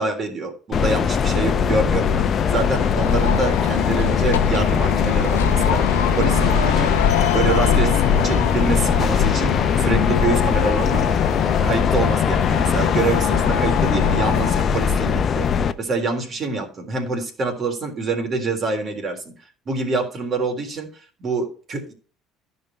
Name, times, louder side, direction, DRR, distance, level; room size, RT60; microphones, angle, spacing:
voice 1, 0.0-6.9 7.3-11.0 11.6-19.3 19.7-20.9 21.2-21.9, right 3 dB, 45° right, 3 dB, 3.7 m, -26 dB
sound 1, 0.7-15.7, left 7 dB, 45° left, 0.8 m, -20 dB
sound 2, 2.0-14.8, left 10 dB, 85° left, 0.9 m, -27 dB
14.5 x 5.4 x 4.4 m, 0.40 s
hypercardioid pair, 60°, 0 cm